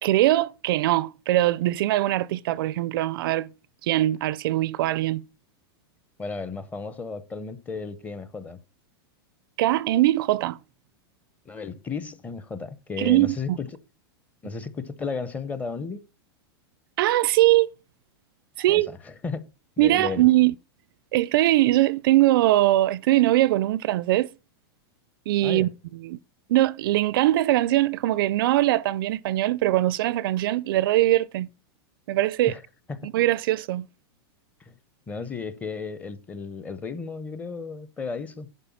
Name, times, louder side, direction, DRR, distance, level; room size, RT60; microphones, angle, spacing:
voice 1, 0.0-3.5 3.8-5.2 9.6-10.6 13.0-13.6 17.0-17.7 18.6-19.0 19.8-20.5 21.1-24.3 25.3-26.2 26.5-31.5 32.1-32.6 33.0-33.9, right 15 dB, 55° right, 0.4 m, -21 dB
voice 2, 6.2-8.6 11.5-13.7 14.4-16.0 18.7-19.0 19.2-19.5 19.8-20.3 25.4-25.7 32.5-32.6 32.9-33.1 34.7-34.8 35.1-38.5, left 4 dB, 10° left, 0.7 m, -34 dB
11.0 x 4.5 x 7.1 m
supercardioid pair, 160°, 14 cm